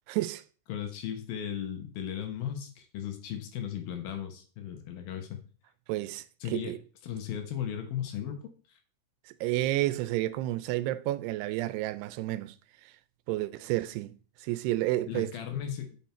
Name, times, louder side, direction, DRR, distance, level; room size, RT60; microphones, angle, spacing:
voice 1, 0.1-0.4 5.9-6.8 9.3-12.6 13.3-14.1 14.4-15.3, right 16 dB, 85° right, 2.6 m, -30 dB
voice 2, 0.7-5.4 6.4-6.7 7.0-8.4 8.7-8.8 15.1-16.0, left 9 dB, 70° left, 2.7 m, -36 dB
7.3 x 6.0 x 4.3 m
omnidirectional pair, 4.7 m